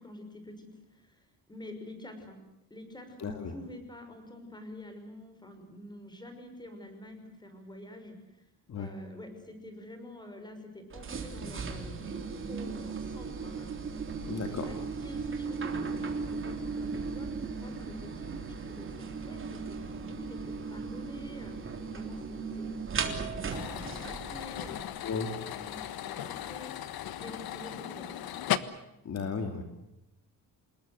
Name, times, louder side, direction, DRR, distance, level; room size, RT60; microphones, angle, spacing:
voice 1, 0.0-2.4 2.7-8.5 8.8-13.7 14.2-22.7 22.9-25.0 25.5-26.7 27.2-28.3, left 1 dB, 10° left, 7 dB, 5.8 m, -47 dB
voice 2, 3.2-3.5 8.7-8.9 14.2-14.7 25.0-25.3 29.0-29.6, left 5 dB, 45° left, 5 dB, 2.7 m, -34 dB
sound 1, 10.9-24.8, right 4 dB, 35° right, 3.6 m, -37 dB
sound 2, 23.5-28.6, left 11 dB, 70° left, 1.5 m, -37 dB
28.0 x 21.0 x 8.1 m, 0.88 s
cardioid pair, 165°, 37 cm